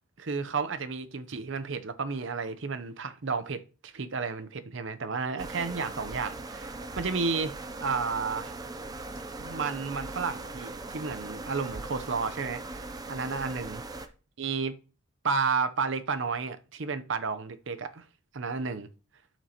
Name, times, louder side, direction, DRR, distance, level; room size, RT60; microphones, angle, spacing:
voice 1, 0.2-8.5 9.4-13.8 14.4-14.7 15.2-18.0 18.3-18.9, right 5 dB, 60° right, 0.6 m, -32 dB
sound 1, 5.4-14.1, right 2 dB, 20° right, 0.4 m, -40 dB
11.0 x 6.0 x 2.9 m
head